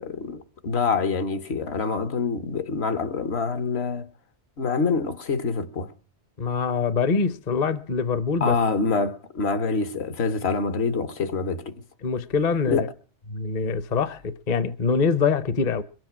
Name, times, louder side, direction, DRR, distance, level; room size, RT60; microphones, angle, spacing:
voice 1, 0.0-4.1 4.6-5.9 8.4-11.7 12.7-12.9, left 4 dB, 65° left, 1.3 m, -26 dB
voice 2, 6.4-8.6 12.0-12.9 13.3-15.8, left 5 dB, 40° left, 0.8 m, -24 dB
22.5 x 7.7 x 5.9 m
omnidirectional pair, 1.2 m